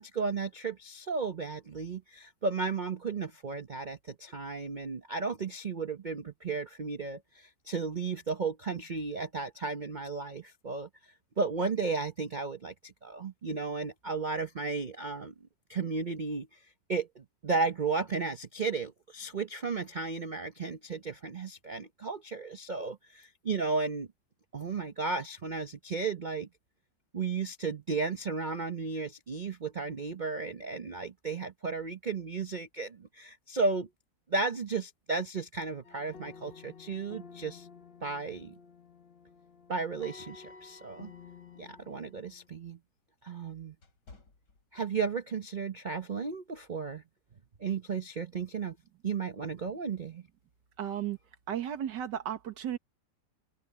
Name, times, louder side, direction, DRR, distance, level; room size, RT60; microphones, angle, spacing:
voice 1, 0.0-10.9 11.4-15.3 15.7-16.6 16.9-24.1 24.5-26.5 27.1-33.9 34.3-37.7 38.0-38.5 39.7-41.1 41.6-42.8 43.2-43.7 44.7-47.0 47.6-48.8 49.0-50.2, right 4 dB, 45° right, 0.6 m, -34 dB
sound 1, 35.8-42.5, left 5 dB, 45° left, 0.7 m, -52 dB
sound 2, 42.4-45.3 45.7-45.9 46.5-46.8, left 3 dB, 65° left, 3.9 m, -59 dB
voice 2, 50.8-51.2 51.5-52.8, right 10 dB, 70° right, 2.1 m, -34 dB
omnidirectional pair, 2.0 m